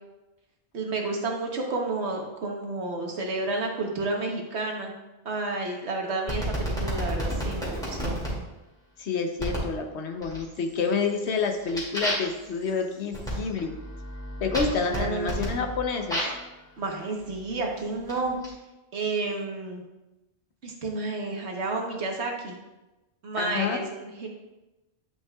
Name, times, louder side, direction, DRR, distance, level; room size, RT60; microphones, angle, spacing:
voice 1, 0.7-4.9 5.2-6.5 6.8-8.2 14.9-15.5 16.8-18.4 18.9-19.8 20.6-22.6 23.2-24.3, right 3 dB, 80° right, 1 dB, 1.4 m, -31 dB
sound 1, 6.3-8.3 9.4-9.7 10.2-10.7 11.1-16.5 17.3-18.5, equal, 5° left, 2.4 m, -32 dB
voice 2, 9.0-13.7 14.4-16.2 23.3-23.8, left 5 dB, 85° left, 4 dB, 1.1 m, -28 dB
9.9 x 5.5 x 2.4 m, 1.0 s
omnidirectional pair, 1.1 m